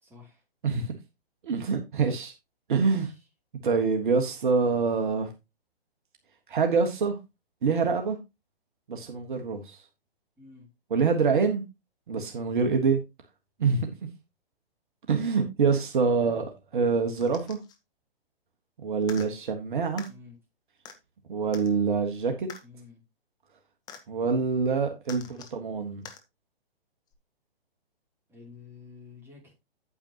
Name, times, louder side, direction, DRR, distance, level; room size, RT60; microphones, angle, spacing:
voice 1, 0.0-0.4 2.7-3.1 10.4-10.7 16.0-16.3 20.1-20.4 22.6-23.0 25.2-25.4 28.3-29.7, left 4 dB, 5° right, -2 dB, 3.0 m, -50 dB
voice 2, 1.4-2.3 2.7-3.1 3.6-5.3 6.5-7.1 7.6-8.2 8.9-9.7 10.9-11.6 12.1-13.0 13.6-13.9 15.1-16.4 16.7-17.6 18.8-20.1 21.3-22.5 24.1-26.0, right 5 dB, 55° right, 4 dB, 1.6 m, -25 dB
sound 1, 17.2-17.8 19.0-19.3 20.0-20.1 20.8-21.0 21.5-21.7 22.5-22.6 23.9-24.0 25.0-25.6 26.0-26.2 27.1-27.2, left 7 dB, 15° left, 0.8 m, -45 dB
8.9 x 8.8 x 2.9 m, 0.24 s
figure-of-eight pair, 125°, 31 cm